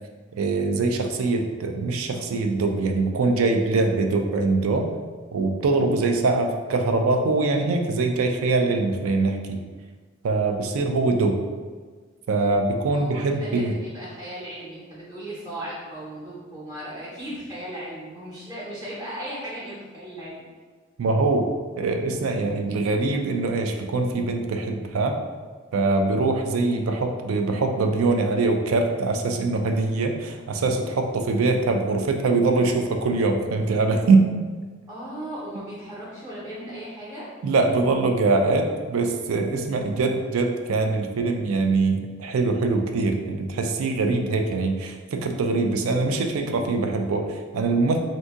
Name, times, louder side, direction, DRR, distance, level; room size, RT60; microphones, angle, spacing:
voice 1, 0.3-4.9 5.3-9.6 10.2-11.4 12.3-13.7 21.0-21.5 21.8-25.2 25.7-34.3 37.4-48.0, right 3 dB, 90° right, 4 dB, 0.4 m, -23 dB
voice 2, 12.9-20.4 34.9-37.3, right 1 dB, 15° right, -8 dB, 0.7 m, -36 dB
2.7 x 2.7 x 3.5 m, 1.5 s
head